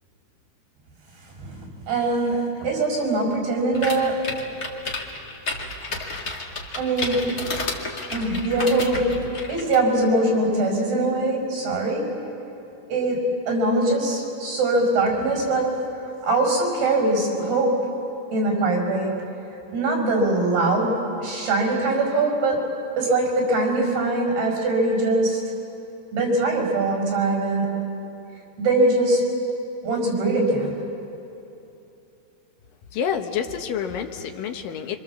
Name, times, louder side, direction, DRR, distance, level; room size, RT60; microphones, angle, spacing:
voice 1, 1.4-4.3 6.8-7.3 8.1-9.2 9.5-12.1 12.9-15.8 16.2-17.8 18.3-19.3 19.7-22.6 23.0-25.4 26.1-27.8 28.6-29.2 29.8-30.7, right 2 dB, 75° right, 1 dB, 7.3 m, -22 dB
sound 1, 3.7-9.8, left 2 dB, 30° left, 1.9 m, -31 dB
voice 2, 32.9-35.0, left 7 dB, 65° left, 4 dB, 2.7 m, -28 dB
27.5 x 25.5 x 7.3 m, 2.9 s
omnidirectional pair, 4.6 m